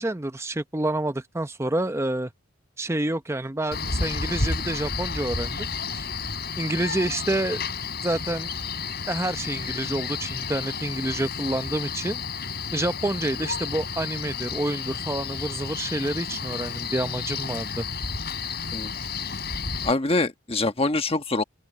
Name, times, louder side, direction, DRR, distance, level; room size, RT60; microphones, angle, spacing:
voice 1, 0.0-2.3 2.8-5.7 5.9-6.1 6.6-7.7 8.0-8.5 9.1-12.2 12.7-17.8, right 1 dB, 15° right, 0.7 m, -28 dB
Male speech man speaking, 3.7-19.9, left 5 dB, 50° left, 7.0 m, -31 dB
voice 2, 19.8-21.4, left 2 dB, 30° left, 1.3 m, -24 dB
open air
head